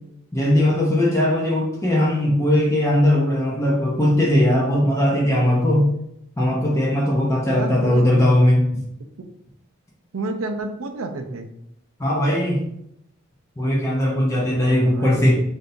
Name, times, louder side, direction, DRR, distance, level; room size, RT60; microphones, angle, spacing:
voice 1, 0.3-5.9 6.4-8.8 12.0-12.6 13.6-15.4, left 1 dB, 15° left, -4 dB, 0.7 m, -19 dB
voice 2, 7.5-8.0 10.1-11.5 14.5-15.3, right 2 dB, 85° right, 6 dB, 0.6 m, -30 dB
5.9 x 2.7 x 2.6 m, 0.77 s
head